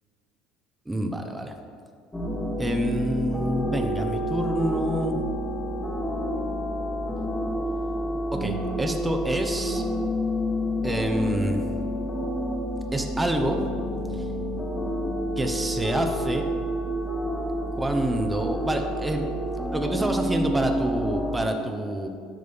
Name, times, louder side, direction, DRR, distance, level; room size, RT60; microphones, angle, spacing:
voice 1, 0.9-1.5 2.6-5.2 8.4-9.8 10.8-11.7 12.9-13.6 14.1-14.2 15.4-16.4 17.8-19.3 19.7-22.1, right 1 dB, 10° right, 4 dB, 0.9 m, -27 dB
sound 1, 2.1-21.5, equal, 10° left, 1.4 m, -29 dB
10.5 x 6.4 x 3.6 m, 2.3 s
hypercardioid pair, 75°, 0 cm